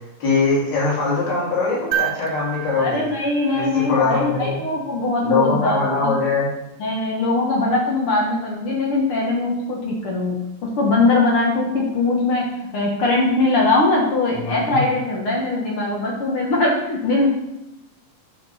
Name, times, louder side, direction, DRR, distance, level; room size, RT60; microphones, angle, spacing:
voice 1, 0.2-3.0 3.5-4.5 5.2-6.5 14.3-14.8, left 4 dB, 35° left, -7 dB, 3.1 m, -21 dB
sound 1, 1.9-4.2 6.3-6.4, right 12 dB, 80° right, 2.0 m, -29 dB
voice 2, 2.8-6.2 6.8-10.3 10.6-12.5 12.7-17.3, left 2 dB, 60° left, -2 dB, 1.5 m, -21 dB
9.5 x 4.5 x 5.5 m, 0.92 s
omnidirectional pair, 4.0 m